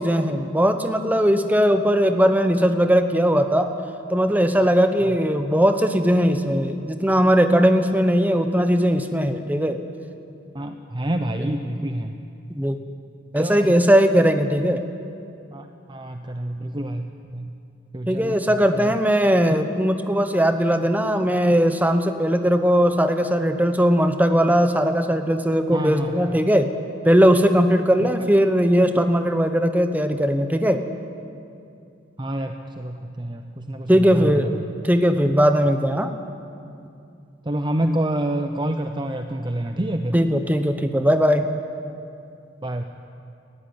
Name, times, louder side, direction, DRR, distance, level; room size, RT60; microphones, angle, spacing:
voice 1, 0.0-3.7 4.1-9.8 11.4-11.5 12.5-12.8 13.3-14.8 18.1-26.7 27.0-30.8 33.9-36.1 40.1-41.5, equal, 10° right, 7 dB, 1.0 m, -19 dB
voice 2, 10.5-12.2 13.4-13.7 15.5-17.5 17.9-18.9 25.7-26.4 32.2-34.7 37.4-40.2 42.6-42.8, right 1 dB, 25° right, 6 dB, 0.7 m, -28 dB
19.0 x 14.5 x 9.8 m, 2.5 s
head